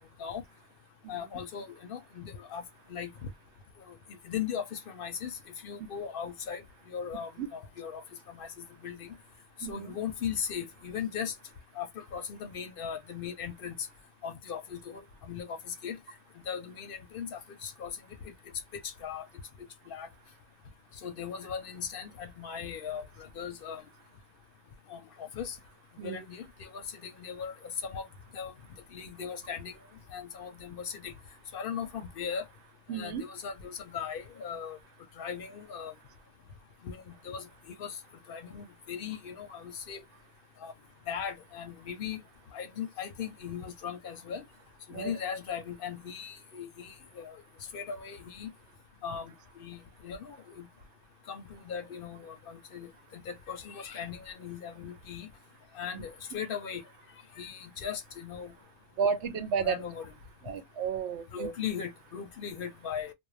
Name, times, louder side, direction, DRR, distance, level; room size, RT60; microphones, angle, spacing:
voice 1, 1.1-2.6 2.9-3.1 3.9-4.0 4.2-6.6 6.9-9.1 9.7-11.3 11.8-13.9 14.2-16.0 16.5-17.9 18.2-18.3 18.8-19.3 19.9-20.1 21.0-23.8 24.9-25.6 26.0-28.1 28.3-28.5 28.9-29.8 30.1-31.1 31.5-32.4 32.9-34.8 35.2-35.9 36.8-38.0 38.3-40.0 40.6-40.7 41.1-42.2 42.5-44.4 44.9-47.4 47.7-48.5 49.0-50.7 51.3-55.3 55.7-56.8 57.4-58.5 59.6-60.1 61.3-63.1, left 7 dB, 60° left, 0.7 m, -38 dB
voice 2, 9.6-9.9 26.0-26.2 32.9-33.2 44.9-45.1 55.9-56.0 59.0-59.8 60.4-61.5, right 6 dB, 85° right, 0.9 m, -32 dB
2.5 x 2.1 x 3.1 m
omnidirectional pair, 1.1 m